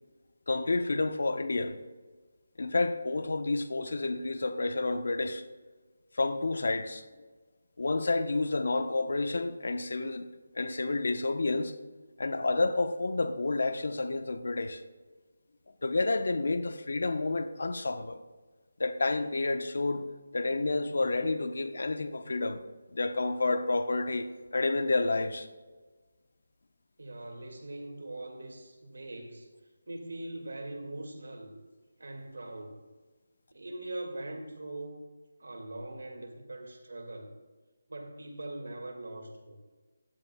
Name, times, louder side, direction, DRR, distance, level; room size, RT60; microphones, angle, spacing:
voice 1, 0.5-1.8 2.6-5.4 6.2-7.0 7.8-10.3 10.5-11.8 12.2-14.8 15.8-18.2 18.8-22.6 22.9-25.5, left 3 dB, 70° left, 1.0 m, -30 dB
voice 2, 27.0-29.5 29.9-31.5 32.0-32.9 33.5-35.1 35.4-37.4 37.9-39.6, right 2 dB, 80° right, 2.3 m, -41 dB
15.0 x 11.0 x 2.4 m
figure-of-eight pair, 165°, 0 cm